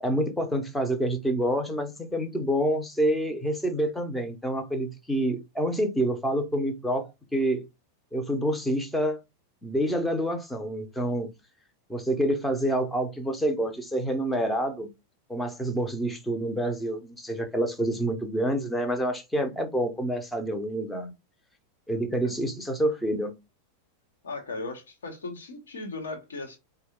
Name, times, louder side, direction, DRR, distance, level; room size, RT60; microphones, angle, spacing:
voice 1, 0.0-7.7 8.1-9.2 9.6-11.3 11.9-14.9 15.3-21.1 21.9-23.3, right 1 dB, 5° left, 0.8 m, -27 dB
voice 2, 24.2-26.6, left 3 dB, 70° left, 1.2 m, -37 dB
4.4 x 2.2 x 3.6 m
figure-of-eight pair, 90°, 0 cm